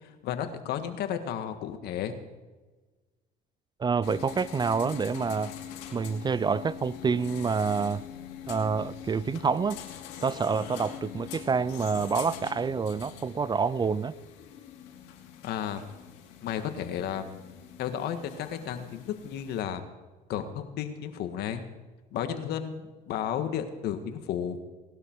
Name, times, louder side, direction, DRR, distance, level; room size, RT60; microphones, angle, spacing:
voice 1, 0.2-2.1 15.4-15.8 16.4-17.5 17.8-19.8 20.3-21.6 22.1-24.6, left 9 dB, 75° left, 8 dB, 1.8 m, -33 dB
voice 2, 3.8-5.5 5.9-8.0 8.5-9.8 10.2-14.1, right 5 dB, 25° right, 20 dB, 0.4 m, -27 dB
sound 1, 4.0-19.6, left 9 dB, 90° left, 2.6 m, -43 dB
19.5 x 12.0 x 4.7 m, 1.3 s
supercardioid pair, 90°, 17 cm